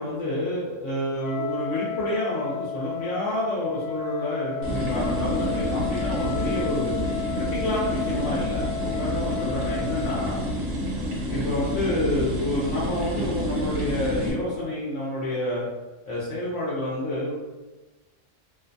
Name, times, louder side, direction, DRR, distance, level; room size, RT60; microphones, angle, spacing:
voice 1, 0.0-6.9 7.3-10.4 11.3-15.6 16.1-17.3, left 1 dB, 75° left, -6 dB, 0.9 m, -29 dB
Wind instrument woodwind instrument, 1.2-10.5, left 8 dB, 60° left, 0.4 m, -33 dB
sound 1, 4.6-14.3, equal, 60° right, 0.9 m, -28 dB
2.5 x 2.1 x 2.5 m, 1.1 s
omnidirectional pair, 1.3 m